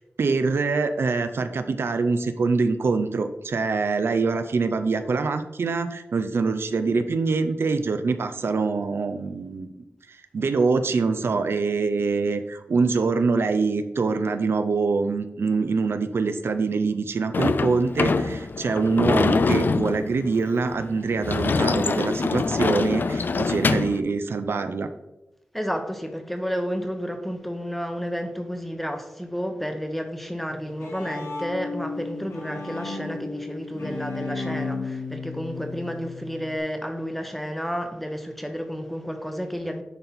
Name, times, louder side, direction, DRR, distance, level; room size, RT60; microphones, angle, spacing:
voice 1, 0.0-9.7 10.1-24.9, right 4 dB, 70° right, 0.5 m, -24 dB
Sliding door / Slam, 17.3-24.0, left 4 dB, 50° left, 0.4 m, -24 dB
voice 2, 25.5-39.8, equal, 5° left, 0.9 m, -31 dB
Bowed string instrument, 30.5-36.6, left 3 dB, 80° left, 1.4 m, -34 dB
10.0 x 4.3 x 4.1 m
wide cardioid pair, 120°, 4 cm